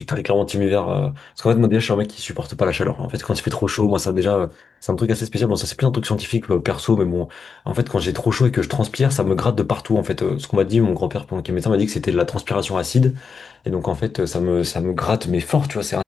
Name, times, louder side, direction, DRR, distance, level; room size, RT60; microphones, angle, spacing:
voice 1, 0.0-16.0, left 6 dB, 70° left, 3.6 m, -21 dB
wide cardioid pair, 135°, 0 cm